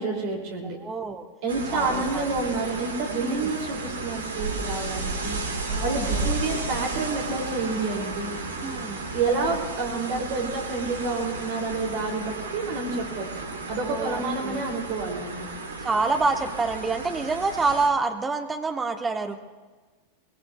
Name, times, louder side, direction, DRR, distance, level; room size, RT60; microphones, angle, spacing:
voice 1, 0.0-0.8 1.4-5.4 5.8-8.3 9.1-13.3 13.7-15.5, right 3 dB, 50° right, 0 dB, 3.0 m, -29 dB
voice 2, 0.8-1.3 1.7-2.3 3.2-3.6 5.7-6.4 8.6-9.1 13.8-14.6 15.8-19.4, right 3 dB, 15° right, 5 dB, 1.3 m, -27 dB
sound 1, 1.5-17.9, right 3 dB, 70° right, 1.8 m, -33 dB
23.0 x 21.0 x 2.4 m, 1.3 s
figure-of-eight pair, 90°, 0 cm